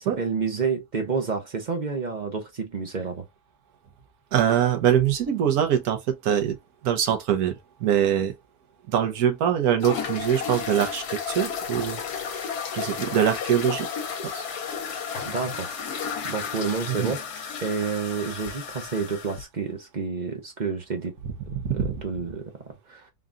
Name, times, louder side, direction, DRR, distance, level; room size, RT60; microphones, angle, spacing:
voice 1, 0.0-3.2 15.2-15.7 16.2-17.2 17.6-21.1 22.0-22.5 22.9-23.0, right 5 dB, 45° right, 0.6 m, -29 dB
voice 2, 4.3-6.6 6.8-8.3 8.9-12.0 12.3-13.9 14.3-14.5 16.9-17.1 21.5-22.0, right 9 dB, 65° right, 1.3 m, -23 dB
sound 1, 9.8-19.4, left 6 dB, 70° left, 1.3 m, -33 dB
3.8 x 2.3 x 3.7 m
omnidirectional pair, 1.8 m